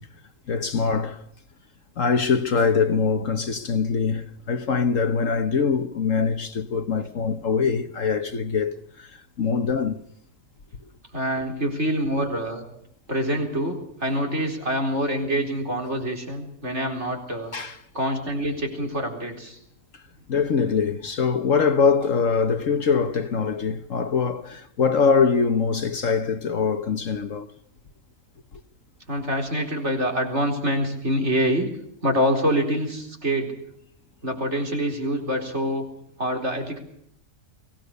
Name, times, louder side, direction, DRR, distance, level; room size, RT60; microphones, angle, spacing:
voice 1, 0.5-1.2 2.0-10.0 17.5-17.8 19.9-20.0 20.3-27.5, left 5 dB, 55° left, 1.4 m, -23 dB
voice 2, 11.1-12.6 13.1-17.5 17.9-19.6 29.1-31.7 32.0-33.5 34.2-35.9 36.2-36.8, equal, 45° right, 4.4 m, -25 dB
24.0 x 17.5 x 6.7 m
omnidirectional pair, 1.7 m